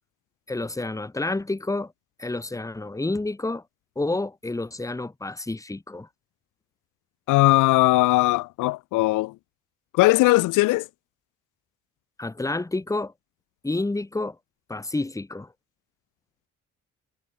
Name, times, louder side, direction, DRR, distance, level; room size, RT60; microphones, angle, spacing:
voice 1, 0.5-1.9 2.2-3.6 4.0-6.1 12.2-13.1 13.6-14.4 14.7-15.5, left 2 dB, 10° left, 1.2 m, -29 dB
voice 2, 7.3-9.3 9.9-10.9, left 20 dB, 85° left, 0.5 m, -19 dB
cardioid pair, 90°, 30 cm